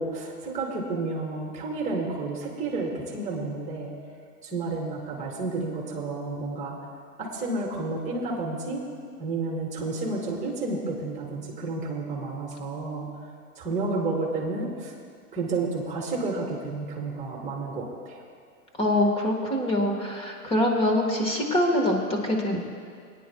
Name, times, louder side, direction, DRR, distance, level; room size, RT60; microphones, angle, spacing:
voice 1, 0.0-3.9 4.4-6.8 7.2-8.8 9.2-13.1 13.6-14.9 15.3-18.2, right 3 dB, 15° right, -3 dB, 2.8 m, -31 dB
voice 2, 18.8-22.6, left 1 dB, 10° left, 0 dB, 1.4 m, -24 dB
22.5 x 10.5 x 2.3 m, 2.2 s
hypercardioid pair, 140°, 48 cm